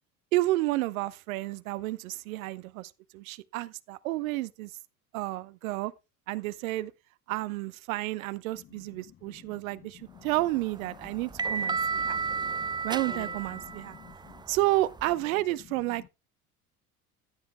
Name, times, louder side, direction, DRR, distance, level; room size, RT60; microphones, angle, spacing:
voice 1, 0.3-4.7 5.1-5.9 6.3-6.9 7.3-12.2 12.8-14.0 14.5-16.1, right 18 dB, 65° right, 0.9 m, -31 dB
voice 2, 8.6-10.3 10.9-12.7 13.1-14.4 15.6-16.1, left 11 dB, 30° left, 0.7 m, -52 dB
sound 1, 10.3-15.1, right 5 dB, 10° right, 0.5 m, -33 dB
15.0 x 11.0 x 2.2 m
figure-of-eight pair, 65°, 45 cm